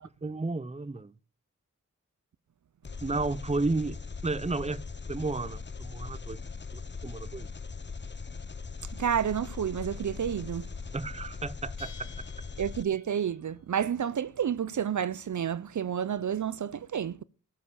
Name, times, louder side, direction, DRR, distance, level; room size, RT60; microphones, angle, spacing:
voice 1, 0.2-1.1 3.0-4.0 4.2-6.4 6.7-7.5 10.9-11.9, right 3 dB, 20° right, 0.7 m, -32 dB
Engine, 2.8-12.8, left 4 dB, 35° left, 0.9 m, -40 dB
voice 2, 9.0-10.7 12.6-17.2, right 8 dB, 65° right, 0.6 m, -30 dB
Bell, 11.8-13.4, left 6 dB, 70° left, 3.5 m, -52 dB
13.5 x 7.7 x 6.9 m
cardioid pair, 60°, 32 cm